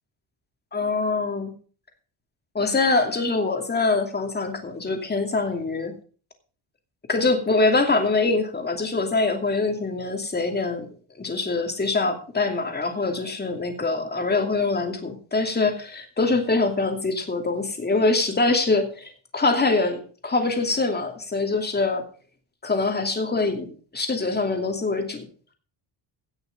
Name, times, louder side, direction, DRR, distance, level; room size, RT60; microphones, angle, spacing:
voice 1, 0.7-1.5 2.5-5.9 7.1-10.9 11.2-22.0 22.6-25.3, left 3 dB, 20° left, 4 dB, 2.7 m, -24 dB
17.0 x 6.7 x 5.3 m, 0.40 s
cardioid pair, 140°, 47 cm